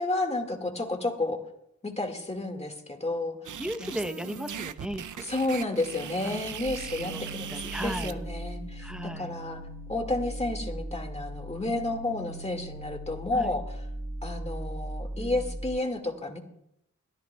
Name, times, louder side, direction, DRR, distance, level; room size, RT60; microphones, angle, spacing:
voice 1, 0.0-1.4 1.8-3.4 3.8-3.9 5.2-7.5 7.8-9.6 9.9-13.6 14.2-16.4, left 2 dB, 20° left, 4 dB, 1.9 m, -31 dB
sound 1, 3.4-8.1, right 8 dB, 80° right, 0.5 m, -39 dB
voice 2, 3.6-5.2 6.2-6.4 6.8-8.2 8.8-9.3 13.3-13.5 15.2-15.6, equal, 5° right, 10 dB, 0.8 m, -37 dB
sound 2, 6.6-15.7, right 1 dB, 50° right, 1.4 m, -39 dB
22.5 x 14.0 x 2.3 m, 0.78 s
wide cardioid pair, 85°, 30 cm